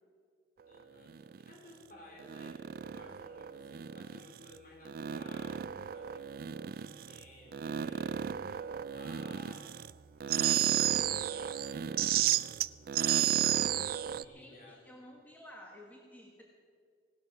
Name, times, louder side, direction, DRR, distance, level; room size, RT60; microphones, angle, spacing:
voice 1, 0.7-6.3 7.0-9.7 10.4-12.5 14.0-14.8, left 1 dB, 50° left, -1 dB, 3.8 m, -56 dB
sound 1, 1.1-1.5 2.2-4.5 4.8-7.2 7.5-9.9 10.2-14.2, right 10 dB, 50° right, 0.3 m, -33 dB
voice 2, 9.3-9.7 14.3-16.4, left 1 dB, 10° left, -1 dB, 1.3 m, -53 dB
17.0 x 12.0 x 5.8 m, 2.1 s
head